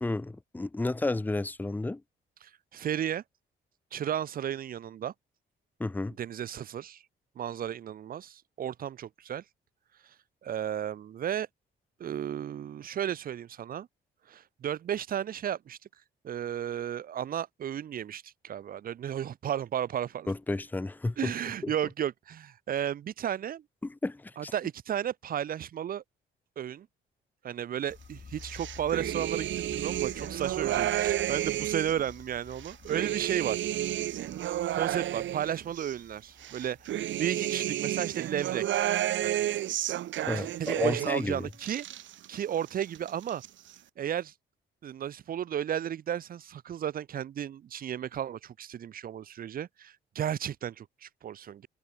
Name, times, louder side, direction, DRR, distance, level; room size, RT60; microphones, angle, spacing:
voice 1, 0.0-2.0 5.8-6.2 20.3-21.3 23.8-24.5 40.3-41.5, left 2 dB, 10° left, 0.6 m, -32 dB
voice 2, 2.4-3.2 3.9-5.1 6.2-7.0 7.4-9.4 10.4-11.5 12.0-13.9 14.3-15.8 16.2-20.3 21.2-23.6 24.4-26.0 26.6-26.9 27.4-33.6 34.7-36.9 37.2-38.8 39.2-39.4 40.4-41.9 42.3-43.4 44.0-44.3 44.8-51.7, right 10 dB, 45° right, 0.6 m, -33 dB
sound 1, 27.9-39.3 39.6-39.7, left 5 dB, 35° left, 1.9 m, -50 dB
sound 2, 28.4-32.0 32.5-35.9 36.4-41.3 41.5-42.4 42.7-43.5, right 12 dB, 70° right, 1.1 m, -31 dB
cardioid pair, 90°, 20 cm